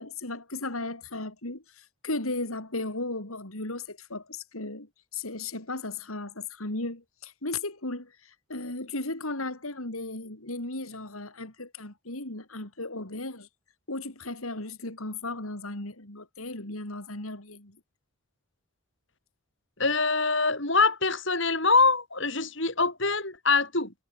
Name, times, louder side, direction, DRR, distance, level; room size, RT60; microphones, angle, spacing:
voice 1, 0.0-13.5 13.9-17.8, left 2 dB, 85° left, 4.6 m, -36 dB
voice 2, 19.8-23.9, left 4 dB, 60° left, 6.8 m, -24 dB
head